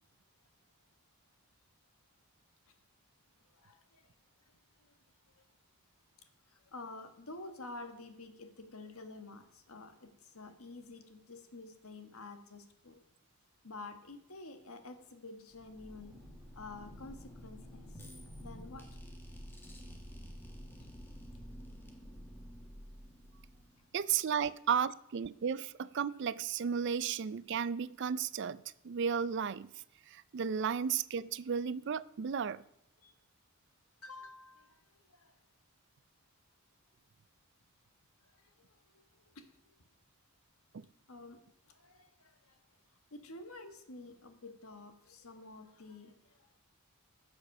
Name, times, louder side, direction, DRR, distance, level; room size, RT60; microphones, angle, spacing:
voice 1, 3.5-4.1 4.8-5.0 5.3-5.4 6.5-13.0 13.6-16.1 16.5-18.8 20.8-20.9 33.0-33.1 34.0-34.8 35.1-35.4 38.2-39.8 41.1-41.4 41.7-42.6 43.1-46.6, left 3 dB, 70° left, 7 dB, 1.4 m, -50 dB
sound 1, 15.5-24.0, equal, 10° left, 1.3 m, -50 dB
voice 2, 23.9-29.7 30.1-32.6 40.7-40.8, right 7 dB, 50° right, 18 dB, 0.4 m, -34 dB
15.0 x 6.2 x 6.5 m, 0.80 s
head